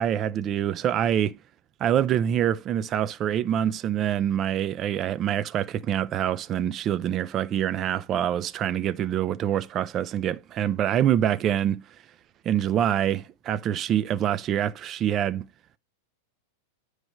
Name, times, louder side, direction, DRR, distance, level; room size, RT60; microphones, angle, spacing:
voice 1, 0.0-1.4 1.8-12.0 12.4-15.5, right 10 dB, 35° right, 0.5 m, -25 dB
9.5 x 3.2 x 6.3 m
hypercardioid pair, 105°, 0 cm